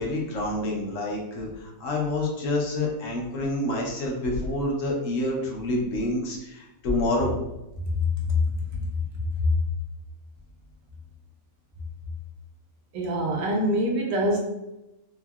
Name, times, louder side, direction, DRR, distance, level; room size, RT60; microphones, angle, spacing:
voice 1, 0.0-7.3, left 1 dB, 70° left, -1 dB, 1.0 m, -28 dB
voice 2, 7.8-8.5 9.3-9.5 12.9-14.4, left 1 dB, 70° right, 0 dB, 0.9 m, -24 dB
3.6 x 2.0 x 2.2 m, 0.94 s
omnidirectional pair, 1.5 m